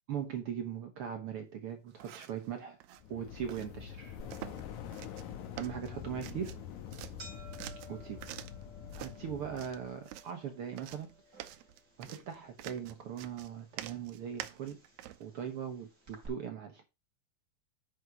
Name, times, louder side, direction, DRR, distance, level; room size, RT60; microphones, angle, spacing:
voice 1, 0.1-2.8 3.1-4.2 5.6-6.6 7.9-8.3 8.9-11.1 11.3-11.5 12.0-14.8 15.2-16.8, right 8 dB, 60° right, 1.6 m, -40 dB
sound 1, 1.9-2.5 2.8-3.0 3.5-3.7 4.3-4.7 4.9-5.3 5.6-6.7 6.9-8.6 8.9-9.2 9.6-10.3 10.8-15.2, right 13 dB, 80° right, 1.9 m, -47 dB
sound 2, 3.0-10.0, left 9 dB, 75° left, 2.4 m, -46 dB
sound 3, 4.2-16.3, equal, 30° right, 3.6 m, -57 dB
9.6 x 5.1 x 4.8 m
omnidirectional pair, 3.5 m